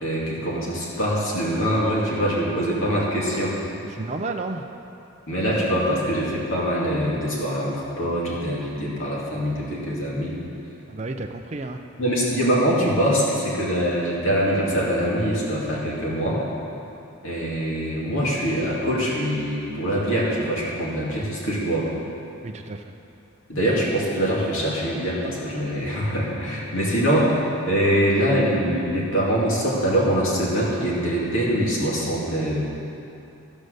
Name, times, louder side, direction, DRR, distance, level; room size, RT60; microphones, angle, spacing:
voice 1, 0.0-3.6 5.3-10.4 12.0-16.4 17.2-21.9 23.5-32.6, equal, 65° left, -5 dB, 2.4 m, -23 dB
voice 2, 3.9-4.6 10.9-11.8 22.4-22.9, right 3 dB, 30° right, 3 dB, 0.4 m, -31 dB
14.5 x 5.4 x 6.4 m, 2.8 s
head